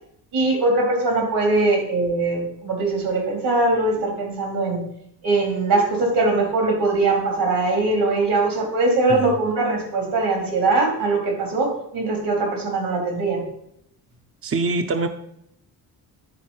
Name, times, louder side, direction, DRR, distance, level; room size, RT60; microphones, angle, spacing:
voice 1, 0.3-4.8 5.2-13.4, right 2 dB, 80° right, 2 dB, 3.3 m, -21 dB
voice 2, 14.4-15.1, right 3 dB, 35° right, 6 dB, 0.7 m, -23 dB
10.5 x 4.4 x 5.6 m, 0.74 s
cardioid pair, 65°, 40 cm